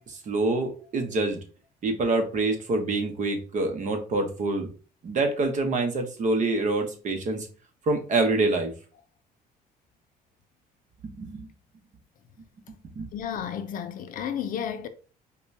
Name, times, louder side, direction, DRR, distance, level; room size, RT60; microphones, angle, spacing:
voice 1, 0.1-1.4 1.8-4.7 5.0-7.5 7.9-8.7 11.0-11.5 12.7-13.1, right 2 dB, 45° right, 0.9 m, -26 dB
voice 2, 13.1-14.9, left 8 dB, 55° left, 0.4 m, -32 dB
5.1 x 2.3 x 2.7 m
cardioid pair, 110°, 17 cm